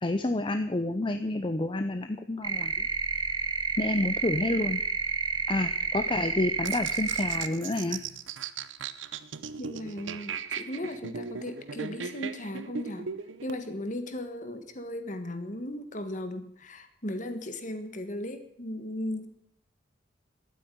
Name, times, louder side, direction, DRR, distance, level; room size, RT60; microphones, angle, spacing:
voice 1, 0.0-2.9 3.8-4.8 5.5-8.0, left 2 dB, 25° left, 8 dB, 0.7 m, -29 dB
sound 1, 2.4-7.5, right 4 dB, 25° right, 0.9 m, -30 dB
sound 2, 6.6-13.6, right 6 dB, 85° right, 0.8 m, -38 dB
voice 2, 9.6-13.1 13.4-19.3, left 1 dB, 40° left, 9 dB, 1.6 m, -36 dB
12.0 x 9.5 x 9.2 m, 0.68 s
head